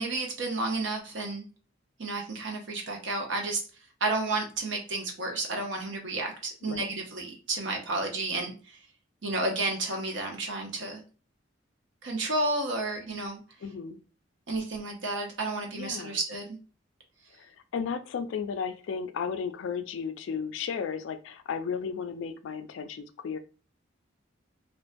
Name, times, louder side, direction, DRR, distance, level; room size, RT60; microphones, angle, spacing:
voice 1, 0.0-1.5 2.0-3.6 4.0-8.8 9.2-11.0 12.0-13.4 14.5-16.6, right 2 dB, 70° right, 2 dB, 0.7 m, -31 dB
voice 2, 13.6-14.0 15.8-16.2 17.3-23.4, left 6 dB, 75° left, 10 dB, 0.3 m, -34 dB
2.5 x 2.2 x 2.5 m, 0.36 s
head